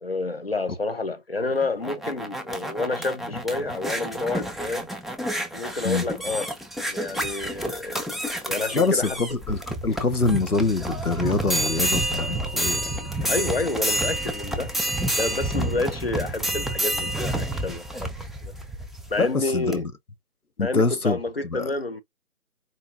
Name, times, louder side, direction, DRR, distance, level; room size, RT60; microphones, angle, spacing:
voice 1, 0.0-4.9 5.5-6.5 6.9-8.1 8.5-9.2 13.3-14.7 15.2-18.1 18.4-18.5 19.1-19.9 20.6-22.0, left 3 dB, 40° left, 0.8 m, -29 dB
sound 1, 1.5-19.2 19.7-19.8, right 1 dB, ahead, 0.4 m, -29 dB
voice 2, 8.7-13.4 15.7-15.8 19.2-19.9 20.6-21.2 21.4-21.7, left 3 dB, 85° left, 1.4 m, -25 dB
4.4 x 4.0 x 2.5 m
figure-of-eight pair, 160°, 43 cm